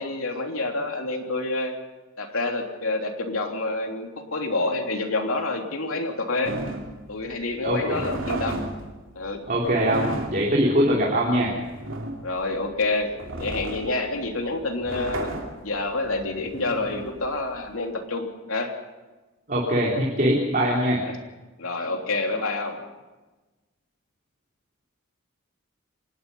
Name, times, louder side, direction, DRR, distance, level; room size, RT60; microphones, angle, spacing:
voice 1, 0.0-1.8 2.2-6.6 7.1-8.6 9.1-9.4 12.2-15.3 15.6-18.7 21.0-21.1 21.6-22.8, left 2 dB, 75° left, 3 dB, 3.1 m, -28 dB
sound 1, 6.4-17.8, right 2 dB, 65° right, 2.9 m, -34 dB
voice 2, 7.6-8.0 9.5-11.5 19.5-21.0, equal, 40° right, -3 dB, 3.3 m, -22 dB
25.5 x 19.5 x 5.6 m, 1.2 s
head